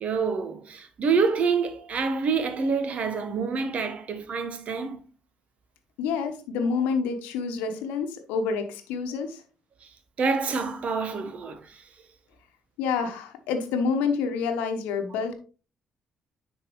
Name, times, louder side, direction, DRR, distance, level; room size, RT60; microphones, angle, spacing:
voice 1, 0.0-5.0 10.2-11.8, right 5 dB, 55° right, 1.1 m, -27 dB
voice 2, 6.0-9.4 12.8-15.3, left 5 dB, 75° left, 1.0 m, -28 dB
9.9 x 3.9 x 3.0 m
hypercardioid pair, 45°, 3 cm